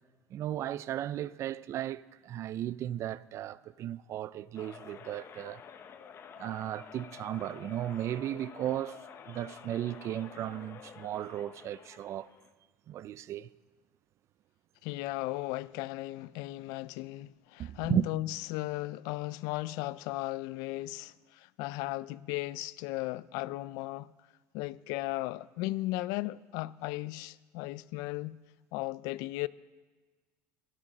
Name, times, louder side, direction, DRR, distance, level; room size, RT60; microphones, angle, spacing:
voice 1, 0.3-5.6 6.4-12.3 12.9-13.5 17.6-18.0, right 11 dB, 50° right, 0.4 m, -35 dB
sound 1, 4.5-12.5, left 7 dB, 40° left, 0.9 m, -50 dB
voice 2, 14.8-24.1 24.5-28.4 28.7-29.5, left 19 dB, 75° left, 0.4 m, -36 dB
12.0 x 11.5 x 6.1 m
supercardioid pair, 105°, 6 cm